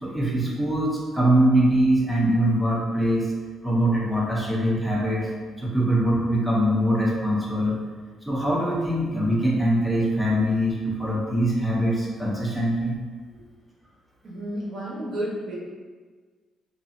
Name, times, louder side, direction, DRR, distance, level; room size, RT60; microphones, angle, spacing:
voice 1, 0.0-3.3 3.6-5.3 5.6-7.8 8.3-13.0, right 1 dB, 5° right, -4 dB, 1.0 m, -23 dB
voice 2, 14.2-15.6, right 1 dB, 60° right, -6 dB, 1.4 m, -31 dB
3.0 x 2.8 x 3.8 m, 1.5 s
cardioid pair, 90°, 0 cm